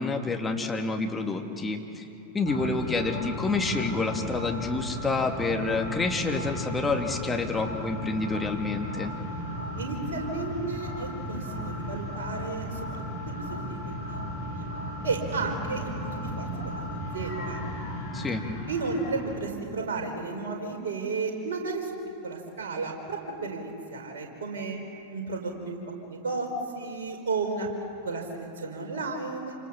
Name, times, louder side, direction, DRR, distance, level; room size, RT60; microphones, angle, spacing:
voice 1, 0.0-2.0 2.3-9.1 18.1-18.4, left 3 dB, 10° left, 2 dB, 2.6 m, -28 dB
sound 1, 2.4-19.4, equal, 55° left, 6.5 m, -35 dB
voice 2, 9.8-13.0 13.3-13.8 14.0-14.2 14.5-14.6 15.0-17.6 18.7-21.9 22.2-24.8 25.1-25.8 26.0-26.5 26.7-27.7 28.0-29.6, right 4 dB, 60° right, 2 dB, 4.9 m, -33 dB
28.5 x 26.0 x 7.3 m, 2.8 s
figure-of-eight pair, 90°, 0 cm